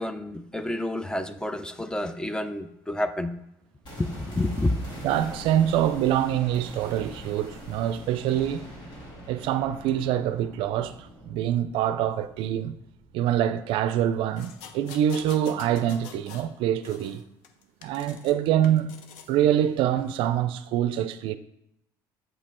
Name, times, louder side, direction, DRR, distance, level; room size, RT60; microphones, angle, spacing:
voice 1, 0.0-3.3 4.0-4.7, left 1 dB, 10° left, 0.4 m, -29 dB
sound 1, 3.8-13.9 14.1-14.2, equal, 55° left, 2.3 m, -43 dB
voice 2, 5.0-8.6 9.3-12.8 13.1-17.2 17.8-18.9 19.3-21.4, right 11 dB, 75° right, 0.4 m, -25 dB
sound 2, 14.4-16.5 16.8-18.3 18.6-19.3 20.0-20.1, left 7 dB, 85° left, 0.6 m, -46 dB
7.8 x 3.0 x 4.3 m
supercardioid pair, 85°, 9 cm